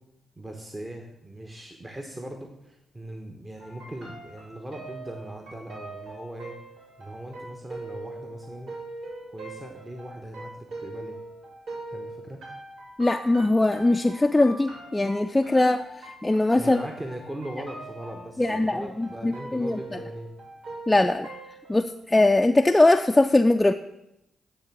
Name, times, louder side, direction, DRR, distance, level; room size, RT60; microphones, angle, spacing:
voice 1, 0.4-6.6 7.0-8.7 9.3-11.2 11.9-12.4 16.6-20.3, right 1 dB, 25° right, 3 dB, 1.0 m, -39 dB
sound 1, 3.6-21.9, right 2 dB, 80° right, 3.0 m, -42 dB
voice 2, 13.0-16.8 18.4-19.8 20.9-21.3 21.7-23.7, left 2 dB, 20° left, 5 dB, 0.4 m, -21 dB
9.9 x 3.4 x 6.0 m, 0.87 s
supercardioid pair, 50°, 0 cm